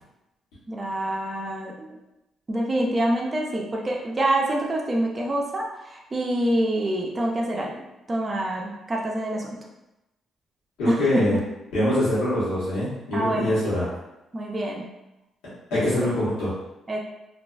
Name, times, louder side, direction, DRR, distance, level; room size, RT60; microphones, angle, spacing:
voice 1, 0.7-2.0 2.5-9.6 10.9-11.2 13.1-13.6 13.8-13.9 14.3-14.8 15.7-16.0 16.9-17.0, right 1 dB, 35° right, -2 dB, 0.5 m, -26 dB
voice 2, 10.8-11.4 11.7-13.8 15.7-16.5, left 1 dB, 90° left, -11 dB, 1.0 m, -24 dB
2.4 x 2.3 x 2.2 m, 0.94 s
supercardioid pair, 60°, 0 cm